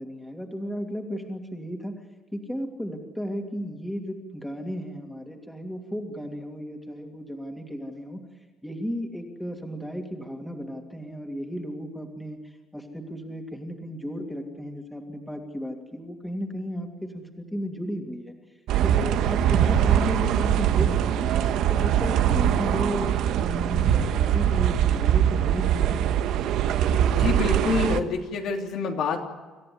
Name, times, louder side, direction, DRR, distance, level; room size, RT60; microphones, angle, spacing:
voice 1, 0.0-2.0 2.3-8.2 8.6-18.3 18.8-26.1, equal, 5° left, 3 dB, 2.8 m, -34 dB
sound 1, 18.7-28.0, right 10 dB, 70° right, 1.4 m, -22 dB
voice 2, 27.1-29.3, left 5 dB, 65° left, 2 dB, 3.1 m, -27 dB
27.5 x 14.0 x 9.7 m, 1.3 s
cardioid pair, 150°, 0 cm